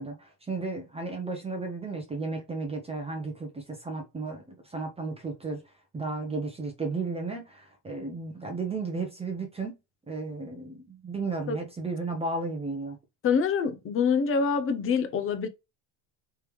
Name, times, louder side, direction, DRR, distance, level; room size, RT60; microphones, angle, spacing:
voice 1, 0.0-5.6 5.9-9.8 10.1-13.0, right 3 dB, 10° right, 0.7 m, -34 dB
voice 2, 13.2-15.5, left 6 dB, 25° left, 0.6 m, -25 dB
3.5 x 3.3 x 3.1 m
supercardioid pair, 125°, 50 cm